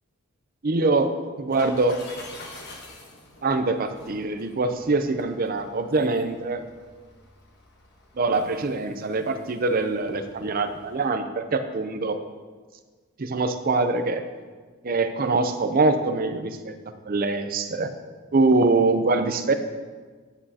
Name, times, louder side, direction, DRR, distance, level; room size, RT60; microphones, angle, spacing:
voice 1, 0.6-1.1 1.4-2.0 3.4-6.6 8.2-12.2 13.2-14.2 14.8-16.7 17.1-17.9 18.3-19.5, right 3 dB, 40° right, 9 dB, 0.5 m, -23 dB
sound 1, 1.5-11.1, left 2 dB, 50° left, 1.2 m, -47 dB
9.8 x 9.7 x 2.8 m, 1.4 s
head